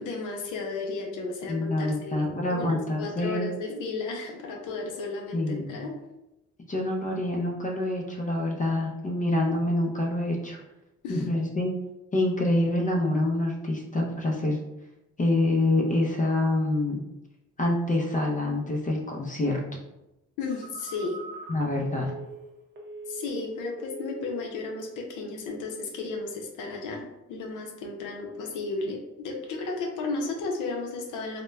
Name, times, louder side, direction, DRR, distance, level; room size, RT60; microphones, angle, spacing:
voice 1, 0.0-6.0 11.0-11.3 20.4-21.2 23.1-31.4, left 3 dB, 85° left, 1 dB, 0.6 m, -34 dB
voice 2, 1.5-3.5 5.3-5.8 6.7-10.6 11.1-11.7 12.1-14.6 15.2-17.0 17.6-19.6 21.5-22.1, left 1 dB, 25° left, -1 dB, 0.5 m, -26 dB
Telephone, 20.5-23.5 23.8-24.5 24.8-25.1, right 3 dB, 35° right, 0.6 m, -42 dB
2.2 x 2.1 x 3.1 m, 0.93 s
cardioid pair, 90°, 30 cm